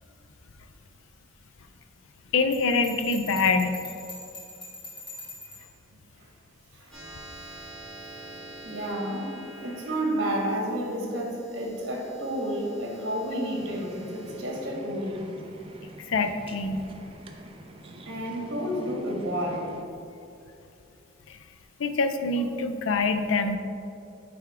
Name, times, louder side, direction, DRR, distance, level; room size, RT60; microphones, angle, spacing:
voice 1, 2.3-3.8 16.1-16.8 21.3-21.4 21.8-23.6, left 3 dB, 70° left, 8 dB, 0.5 m, -25 dB
Bell, 2.5-5.7, left 2 dB, 25° left, 1.5 m, -42 dB
sound 1, 6.9-17.8, right 1 dB, 5° left, 1.5 m, -47 dB
voice 2, 8.6-9.3 9.6-15.2 18.1-19.7, equal, 55° right, -1 dB, 1.4 m, -30 dB
sound 2, 13.6-19.8, right 1 dB, 25° right, 0.4 m, -45 dB
8.4 x 3.5 x 4.7 m, 2.6 s
head